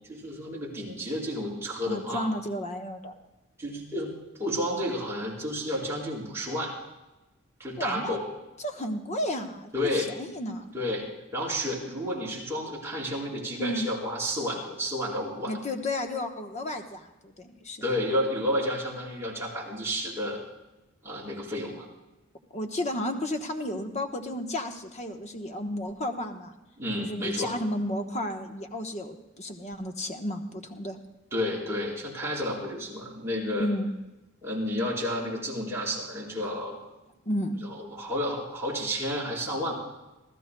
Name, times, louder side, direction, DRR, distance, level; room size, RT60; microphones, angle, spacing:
voice 1, 0.1-2.3 3.6-4.1 4.4-6.8 7.6-8.2 9.7-10.1 10.7-15.5 17.8-20.4 21.0-21.9 26.8-27.5 31.3-33.7 34.4-36.8 37.6-39.7, equal, 15° right, -6 dB, 4.1 m, -31 dB
voice 2, 1.9-3.1 7.8-8.2 8.6-10.7 13.6-13.9 15.4-17.8 22.5-26.5 27.0-31.0 33.6-33.9 37.3-37.6, left 1 dB, 35° left, 5 dB, 1.1 m, -32 dB
26.5 x 14.5 x 2.3 m, 1.0 s
head